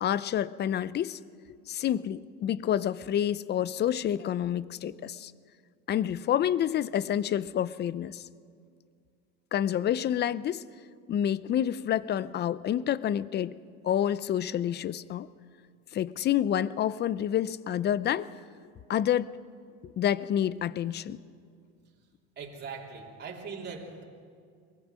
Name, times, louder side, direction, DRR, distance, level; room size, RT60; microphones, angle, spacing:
voice 1, 0.0-1.2 1.7-5.3 5.9-8.2 9.5-10.6 11.1-13.6 13.8-15.3 15.9-18.3 18.9-19.3 20.0-21.2, left 10 dB, 30° left, 18 dB, 0.5 m, -28 dB
voice 2, 22.4-24.0, right 5 dB, 30° right, -2 dB, 3.3 m, -40 dB
22.5 x 20.0 x 6.2 m, 2.2 s
supercardioid pair, 115°, 34 cm